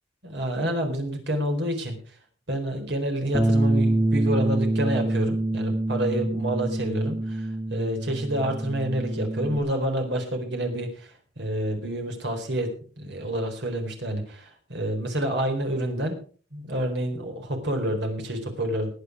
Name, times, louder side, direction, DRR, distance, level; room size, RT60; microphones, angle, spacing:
voice 1, 0.2-2.0 2.5-16.2 16.5-18.9, right 1 dB, 65° right, 4 dB, 4.3 m, -28 dB
Bass guitar, 3.3-9.6, right 1 dB, 15° right, 2.3 m, -25 dB
20.0 x 8.4 x 4.9 m, 0.41 s
head